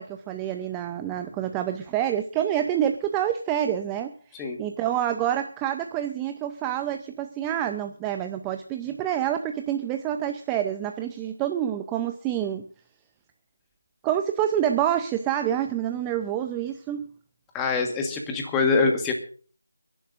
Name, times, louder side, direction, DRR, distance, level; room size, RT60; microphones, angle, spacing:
voice 1, 0.0-12.7 14.0-17.1, right 10 dB, 10° right, 7 dB, 0.5 m, -27 dB
voice 2, 17.5-19.1, left 4 dB, 10° left, 3 dB, 1.4 m, -24 dB
29.0 x 11.0 x 2.5 m, 0.42 s
figure-of-eight pair, 170°, 0 cm